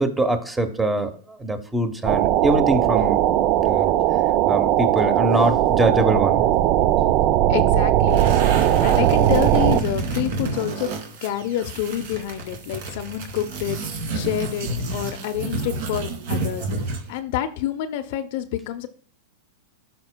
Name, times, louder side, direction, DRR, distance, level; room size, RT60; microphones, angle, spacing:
voice 1, 0.0-3.2 3.6-3.9 4.5-6.4, right 1 dB, 10° right, 8 dB, 0.9 m, -23 dB
sound 1, 2.0-9.8, right 13 dB, 45° right, 0.4 m, -19 dB
voice 2, 7.5-8.4 8.8-10.9 11.2-13.8 14.1-18.9, left 11 dB, 60° left, 9 dB, 0.6 m, -28 dB
sound 2, 8.1-17.2, right 3 dB, 65° right, 1.7 m, -29 dB
12.0 x 4.4 x 2.2 m, 0.43 s
hypercardioid pair, 120°, 0 cm